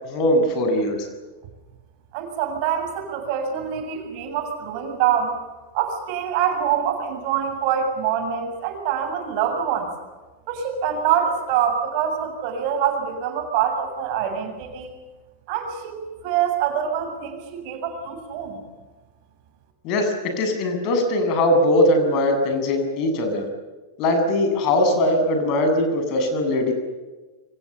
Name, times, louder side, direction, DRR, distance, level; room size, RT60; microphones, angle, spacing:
voice 1, 0.0-1.1 19.8-23.5 24.0-26.7, left 1 dB, 40° left, 5 dB, 7.7 m, -20 dB
voice 2, 2.1-5.4 5.7-9.9 10.5-14.9 15.5-18.6, right 8 dB, 45° right, 5 dB, 7.4 m, -25 dB
29.5 x 26.0 x 7.1 m, 1.2 s
figure-of-eight pair, 90°, 0 cm